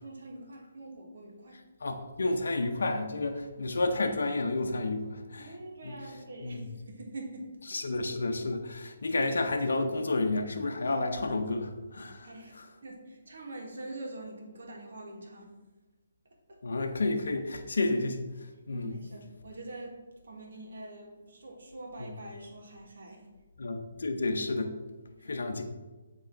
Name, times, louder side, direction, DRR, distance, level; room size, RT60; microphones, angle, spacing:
voice 1, 0.0-1.7 5.4-7.8 12.2-15.5 16.5-16.6 18.7-23.3 25.2-25.3, right 1 dB, 70° right, 0 dB, 1.5 m, -44 dB
voice 2, 1.8-5.5 5.8-5.9 6.4-6.6 7.7-12.3 16.6-18.3 18.7-18.9 23.6-24.7 25.3-25.6, left 2 dB, 75° left, 5 dB, 0.6 m, -30 dB
7.7 x 3.0 x 4.4 m, 1.2 s
hypercardioid pair, 145°, 0 cm